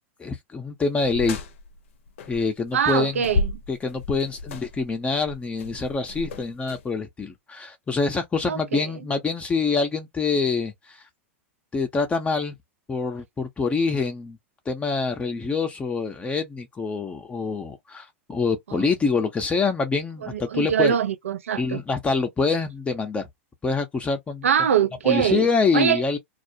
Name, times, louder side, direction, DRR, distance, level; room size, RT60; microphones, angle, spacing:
voice 1, 0.2-1.4 2.3-3.3 3.7-11.0 11.7-12.5 12.9-14.4 14.7-20.9 21.6-23.2 23.6-24.5 25.0-26.2, left 4 dB, 15° left, 0.6 m, -25 dB
sound 1, 1.0-2.6 2.9-6.9, left 3 dB, 70° left, 0.6 m, -32 dB
voice 2, 2.7-3.5 8.5-8.8 20.3-21.8 24.4-25.5 25.7-26.0, right 8 dB, 85° right, 0.6 m, -23 dB
2.3 x 2.0 x 2.7 m
hypercardioid pair, 110°, 7 cm